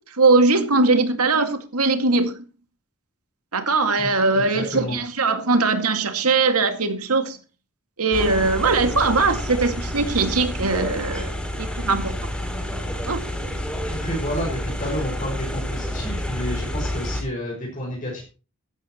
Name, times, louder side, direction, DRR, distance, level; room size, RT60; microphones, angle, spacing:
voice 1, 0.1-2.4 3.5-7.4 8.0-12.2 13.1-13.2, right 3 dB, 85° right, 2.2 m, -20 dB
voice 2, 4.0-5.0 13.9-18.2, equal, 35° left, 5.8 m, -30 dB
sound 1, 8.1-17.2, equal, 5° left, 3.3 m, -29 dB
15.0 x 13.0 x 3.1 m
head